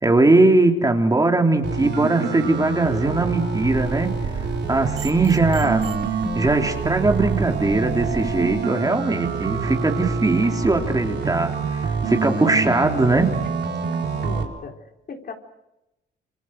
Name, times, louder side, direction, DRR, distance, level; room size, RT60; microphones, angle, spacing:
voice 1, 0.0-4.1 4.7-5.8 6.3-11.5 11.8-13.3, right 2 dB, 20° right, 3 dB, 3.3 m, -20 dB
sound 1, 1.6-14.4, right 5 dB, 60° right, 4.1 m, -26 dB
sound 2, 3.6-8.5, right 7 dB, 85° right, 4.9 m, -35 dB
voice 2, 13.9-14.8 15.1-15.3, left 4 dB, 50° left, 3 dB, 3.9 m, -37 dB
28.0 x 25.0 x 6.4 m, 0.93 s
cardioid pair, 90°, 20 cm